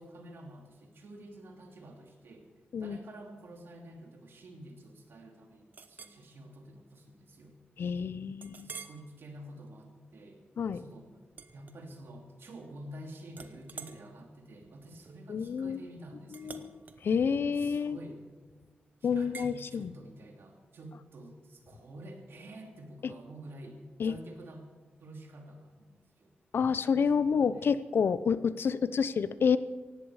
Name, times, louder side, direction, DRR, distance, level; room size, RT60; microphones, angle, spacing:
voice 1, 0.0-2.5 2.8-7.5 8.6-10.4 10.7-11.1 11.5-16.7 17.6-18.2 19.0-24.7 25.0-26.3 27.2-27.7, right 1 dB, 80° right, 2 dB, 2.9 m, -49 dB
Chink clink, 5.7-6.2 6.7-6.9 7.4-7.5 8.4-9.0 9.6-9.8 11.3-12.3 12.6-13.0 13.3-18.4 19.3-19.5, right 5 dB, 50° right, 1.0 m, -49 dB
voice 2, 7.8-8.7 10.6-10.8 15.3-15.8 16.3-18.0 19.0-19.9 23.0-23.1 24.0-24.1 26.5-29.6, left 6 dB, 75° left, 15 dB, 0.7 m, -29 dB
18.0 x 15.5 x 4.9 m, 1.3 s
wide cardioid pair, 150°, 4 cm